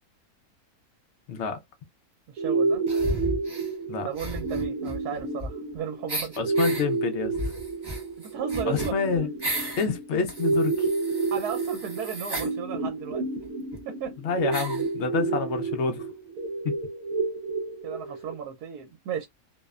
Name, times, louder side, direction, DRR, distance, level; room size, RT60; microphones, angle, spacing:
voice 1, 1.3-1.6 3.9-4.1 6.4-7.3 8.6-9.3 9.8-10.9 14.2-16.1 16.6-16.7, left 5 dB, 70° left, 0.6 m, -28 dB
voice 2, 2.3-2.8 4.0-6.3 8.2-9.0 11.3-13.2 13.9-14.2 15.3-15.4 17.8-19.3, right 8 dB, 85° right, 1.1 m, -35 dB
sound 1, 2.4-18.4, right 3 dB, 70° right, 0.9 m, -30 dB
sound 2, 2.9-3.7 4.1-5.7 6.1-6.8 7.3-9.9 10.2-12.5 13.4-13.5 13.7-13.8 14.5-14.9, right 1 dB, 25° right, 0.5 m, -34 dB
2.7 x 2.0 x 2.3 m
omnidirectional pair, 1.6 m